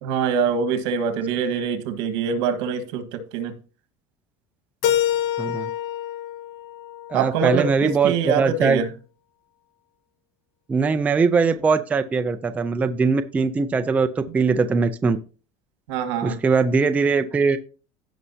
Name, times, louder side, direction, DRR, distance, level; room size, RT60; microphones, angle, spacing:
voice 1, 0.0-3.6 7.1-8.9 15.9-16.4, right 6 dB, 85° right, 1.5 m, -24 dB
Keyboard (musical), 4.8-7.7, left 11 dB, 70° left, 1.1 m, -26 dB
voice 2, 5.4-5.7 7.1-8.8 10.7-15.2 16.2-17.6, right 4 dB, 10° right, 0.4 m, -21 dB
16.0 x 5.5 x 2.8 m
cardioid pair, 175°, 14 cm